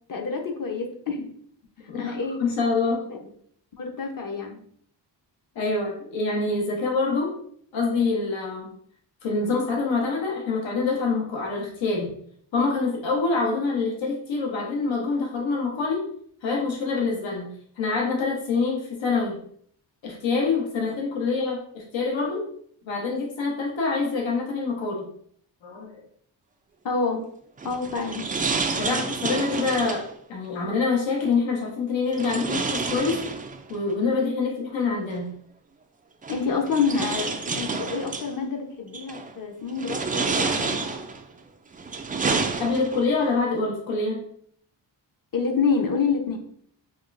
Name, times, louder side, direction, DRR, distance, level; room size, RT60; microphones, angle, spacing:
voice 1, 0.1-1.3 1.9-2.4 3.1-3.2 3.8-4.6 26.8-27.2 27.6-28.2 36.3-41.0 45.3-46.4, left 5 dB, 45° left, 3 dB, 0.9 m, -27 dB
voice 2, 2.4-3.1 5.5-7.3 7.7-8.7 9.2-12.1 12.5-16.0 16.4-19.4 20.0-22.4 22.8-25.0 25.6-26.0 28.8-33.2 33.7-35.3 42.6-44.2, left 4 dB, 80° left, -1 dB, 1.0 m, -26 dB
sound 1, 27.6-30.1 32.1-33.8 35.1-35.2 36.2-38.3 38.9-39.3 39.8-41.2 41.7-43.1, right 4 dB, 20° right, 0.3 m, -29 dB
5.2 x 2.3 x 2.5 m, 0.62 s
cardioid pair, 70°, 45 cm